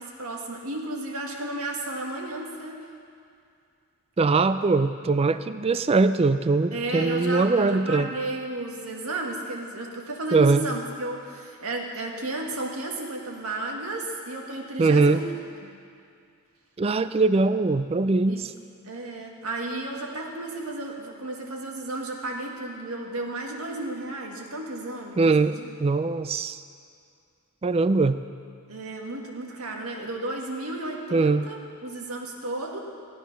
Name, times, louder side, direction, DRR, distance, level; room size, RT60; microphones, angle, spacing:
voice 1, 0.0-2.9 6.7-15.2 15.6-15.7 18.3-18.4 18.8-25.2 25.5-25.7 28.7-32.8, right 2 dB, 85° right, 0 dB, 1.7 m, -33 dB
voice 2, 4.2-8.1 10.3-10.6 14.8-15.2 16.8-18.5 25.2-26.6 27.6-28.2 31.1-31.5, right 3 dB, 25° right, 12 dB, 0.3 m, -22 dB
15.0 x 9.2 x 5.9 m, 2.4 s
head